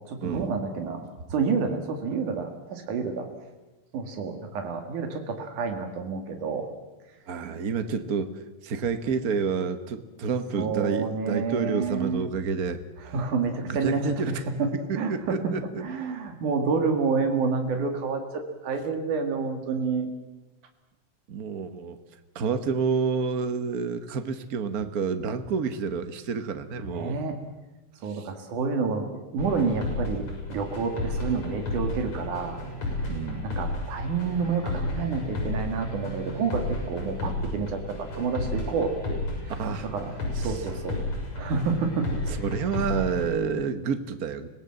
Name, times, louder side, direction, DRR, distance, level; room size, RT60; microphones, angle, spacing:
voice 1, 0.1-3.3 3.9-6.7 10.6-12.2 13.1-15.6 15.8-20.1 26.9-27.4 28.0-32.6 32.9-33.1 33.4-39.2 39.9-40.1 40.4-41.0 41.4-42.2, right 5 dB, 85° right, 5 dB, 3.5 m, -29 dB
voice 2, 7.3-12.8 13.1-13.2 13.6-14.3 14.9-15.8 21.3-22.0 22.3-27.2 28.1-28.3 33.1-33.6 39.6-39.9 40.3-40.6 42.3-44.5, right 5 dB, 65° right, 10 dB, 0.9 m, -29 dB
sound 1, 29.4-43.3, left 2 dB, 60° left, 8.2 m, -32 dB
25.5 x 17.5 x 7.7 m, 1.1 s
omnidirectional pair, 3.4 m